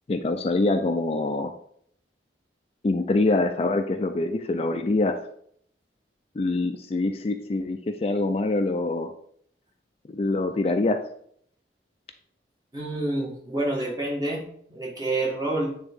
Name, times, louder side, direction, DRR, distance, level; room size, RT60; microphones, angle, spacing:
voice 1, 0.1-1.5 2.8-5.2 6.4-9.1 10.1-11.0, left 2 dB, 35° left, 7 dB, 0.4 m, -25 dB
voice 2, 12.7-14.4 14.7-15.8, right 2 dB, 20° right, -3 dB, 1.6 m, -28 dB
8.8 x 3.6 x 3.5 m, 0.66 s
head